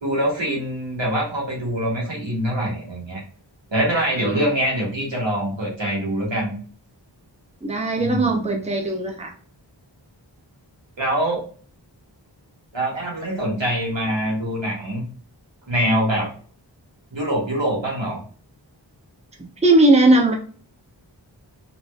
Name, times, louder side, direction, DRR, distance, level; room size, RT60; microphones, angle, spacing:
voice 1, 0.0-3.2 3.7-6.5 8.0-8.6 11.0-11.4 12.7-15.0 15.7-16.3 17.1-18.2, right 1 dB, 80° right, -3 dB, 1.7 m, -24 dB
voice 2, 7.6-9.3 19.6-20.3, right 2 dB, 15° right, 1 dB, 0.8 m, -18 dB
3.8 x 3.3 x 2.3 m, 0.43 s
wide cardioid pair, 40°, 44 cm